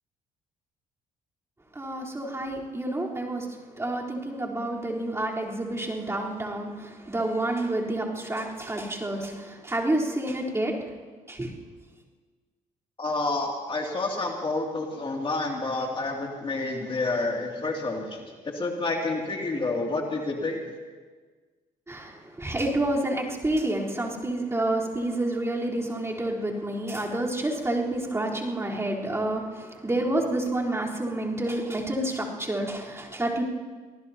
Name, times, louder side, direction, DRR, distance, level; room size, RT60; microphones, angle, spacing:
voice 1, 1.8-3.5 3.8-6.7 7.1-10.7 11.3-11.5 21.9-33.4, right 1 dB, 20° right, -4 dB, 3.8 m, -29 dB
voice 2, 13.0-18.2 18.5-20.6, left 2 dB, 35° left, 0 dB, 2.6 m, -29 dB
25.5 x 19.0 x 2.9 m, 1.4 s
supercardioid pair, 75°, 15 cm